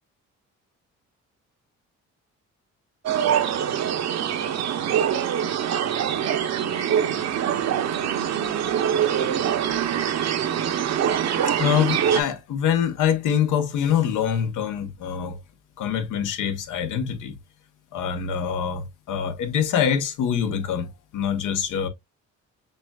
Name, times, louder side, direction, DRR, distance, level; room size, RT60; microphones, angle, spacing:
sound 1, 3.1-12.2, right 9 dB, 60° right, 0.7 m, -24 dB
voice 1, 11.6-15.4 15.8-17.4 17.9-21.9, left 8 dB, 85° left, 0.9 m, -24 dB
6.6 x 2.4 x 2.3 m
cardioid pair, 90°, 30 cm